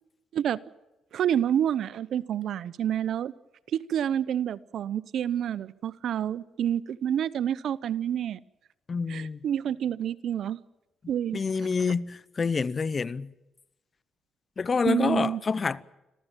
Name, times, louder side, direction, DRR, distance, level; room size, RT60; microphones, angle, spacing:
voice 1, 1.1-3.3 3.9-8.4 9.1-10.6 11.1-11.4 14.8-15.4, right 9 dB, 70° right, 0.8 m, -28 dB
voice 2, 8.9-9.4 11.3-13.3 14.6-15.8, left 5 dB, 35° left, 0.8 m, -27 dB
26.0 x 15.5 x 9.0 m
cardioid pair, 90°, 0 cm